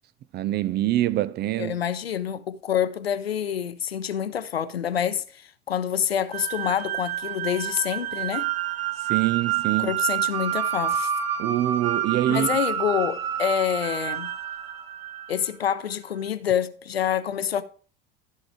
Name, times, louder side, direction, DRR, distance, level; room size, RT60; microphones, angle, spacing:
voice 1, 0.3-1.8 9.1-9.9 11.4-12.5, right 14 dB, 35° right, 0.5 m, -24 dB
voice 2, 1.6-8.5 9.8-11.1 12.3-14.3 15.3-17.6, left 9 dB, 80° left, 0.7 m, -27 dB
sound 1, 6.3-15.5, right 10 dB, 80° right, 1.1 m, -28 dB
14.0 x 4.8 x 4.9 m
figure-of-eight pair, 70°, 30 cm